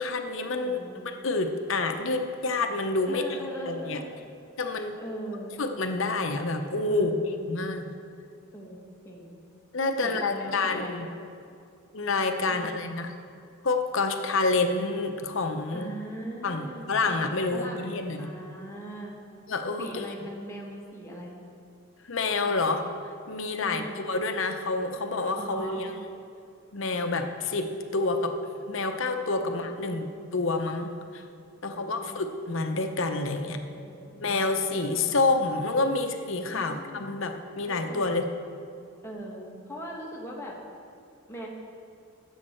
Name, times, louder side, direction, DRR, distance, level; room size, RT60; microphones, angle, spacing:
voice 1, 0.0-3.2 3.7-4.0 4.6-5.0 5.6-7.2 7.5-7.9 9.7-11.1 11.9-13.1 13.6-15.9 16.4-18.3 19.5-20.0 22.1-22.8 23.3-25.9 26.7-28.3 28.7-30.1 30.3-31.2 31.6-33.6 34.2-38.2, left 3 dB, 60° left, 6 dB, 0.8 m, -28 dB
voice 2, 0.6-1.0 3.1-4.1 5.0-5.5 6.9-7.4 8.5-8.8 9.0-9.3 10.0-11.0 12.5-12.8 15.7-19.2 19.8-21.3 23.6-24.0 25.3-25.8 29.4-30.0 31.7-32.3 33.5-34.4 36.5-37.0 37.7-38.1 39.0-40.6 41.3-41.5, right 1 dB, 15° left, -3 dB, 1.6 m, -40 dB
16.5 x 7.3 x 4.4 m, 2.4 s
head